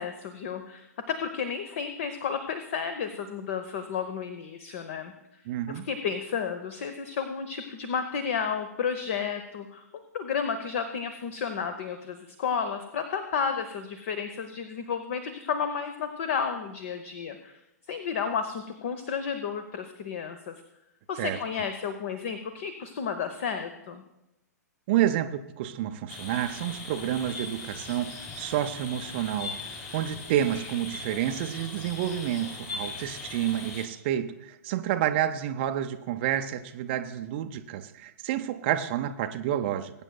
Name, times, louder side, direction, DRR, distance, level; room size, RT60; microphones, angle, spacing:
voice 1, 0.0-5.4 5.7-9.8 10.1-17.6 17.9-20.6 21.1-24.0, left 6 dB, 50° left, 9 dB, 0.8 m, -32 dB
voice 2, 5.5-5.9 21.2-21.4 24.9-29.6 29.9-39.9, right 11 dB, 40° right, 8 dB, 0.6 m, -29 dB
sound 1, 26.1-33.9, left 4 dB, 25° left, 1.8 m, -40 dB
21.0 x 8.9 x 2.3 m, 0.88 s
figure-of-eight pair, 110°, 9 cm